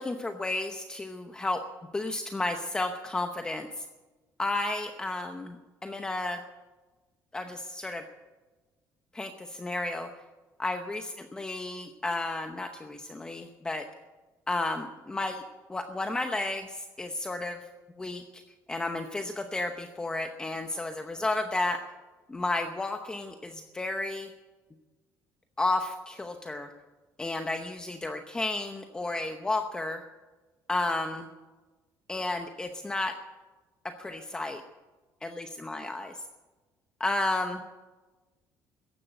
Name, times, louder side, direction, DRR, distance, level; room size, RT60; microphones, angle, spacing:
voice 1, 0.0-1.6 1.9-3.8 4.4-6.4 7.3-8.0 9.1-10.1 10.6-13.9 14.5-15.4 15.7-17.7 18.0-18.4 18.7-21.8 22.3-24.3 25.6-26.7 27.2-30.0 30.7-31.3 32.1-33.2 33.8-34.6 35.6-36.2 37.0-37.6, left 2 dB, 10° left, 6 dB, 0.8 m, -32 dB
15.0 x 10.5 x 8.9 m, 1.2 s
cardioid pair, 165°, 7 cm